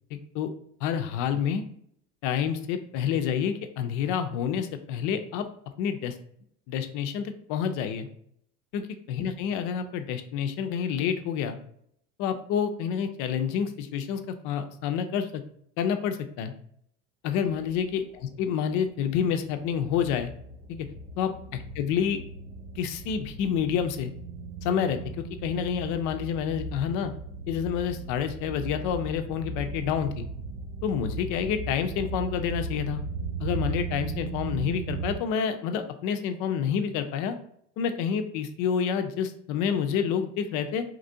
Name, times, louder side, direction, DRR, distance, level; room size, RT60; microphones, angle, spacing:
voice 1, 0.1-0.5 0.8-1.6 2.2-5.4 5.8-6.1 6.7-8.1 8.7-11.6 12.2-15.4 15.8-16.5 17.2-18.0 18.4-20.3 20.7-20.9 21.2-21.3 21.8-22.2 22.8-24.1 24.6-27.1 27.5-30.3 30.8-33.0 33.4-37.3 37.8-40.8, left 8 dB, 55° left, 8 dB, 0.5 m, -28 dB
sound 1, 17.4-35.2, right 4 dB, 65° right, 0.5 m, -37 dB
2.9 x 2.5 x 2.6 m, 0.67 s
hypercardioid pair, 80°, 37 cm